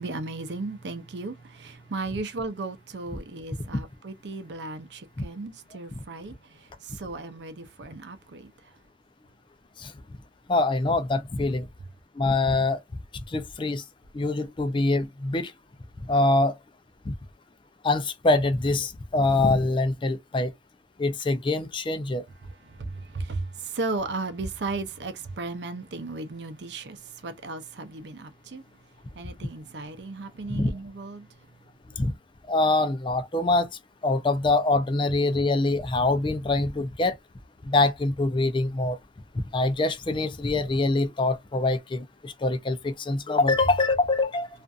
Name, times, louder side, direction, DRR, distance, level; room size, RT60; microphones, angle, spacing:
voice 1, 0.0-8.5 22.6-28.6 29.2-31.3, right 3 dB, 70° right, 0.6 m, -35 dB
voice 2, 10.5-11.7 12.2-12.8 13.3-13.8 14.1-15.5 16.0-16.6 17.1-17.2 17.8-20.5 21.0-22.3 30.5-30.7 32.0-32.1 32.5-33.7 34.0-37.2 37.6-39.0 39.5-44.5, left 2 dB, 25° left, 0.4 m, -24 dB
2.5 x 2.5 x 2.3 m
head